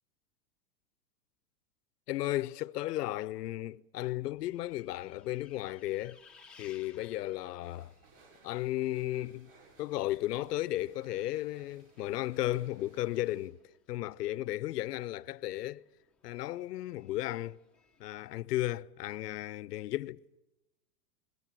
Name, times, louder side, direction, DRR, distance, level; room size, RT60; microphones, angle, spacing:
voice 1, 2.1-6.2 6.6-7.9 8.4-9.5 9.8-13.6 13.9-15.9 16.2-17.6 18.0-20.4, left 15 dB, 80° left, 0.8 m, -34 dB
Bus, 4.0-18.4, left 5 dB, ahead, 1.0 m, -65 dB
sound 1, 7.6-13.5, right 3 dB, 45° right, 7.6 m, -62 dB
26.0 x 22.0 x 7.7 m
supercardioid pair, 160°, 47 cm